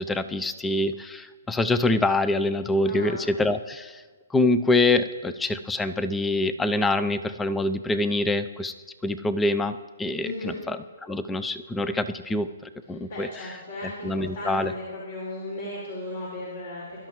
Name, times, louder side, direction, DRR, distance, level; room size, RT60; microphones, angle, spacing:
voice 1, 0.0-4.0 4.3-8.7 9.0-10.8 11.0-12.5 12.9-13.3 14.0-14.7, left 2 dB, 5° left, 12 dB, 0.5 m, -25 dB
voice 2, 2.8-3.2 10.2-10.6 13.1-17.1, left 1 dB, 55° left, -5 dB, 5.0 m, -35 dB
22.0 x 12.0 x 3.1 m, 1.4 s
hypercardioid pair, 155°, 0 cm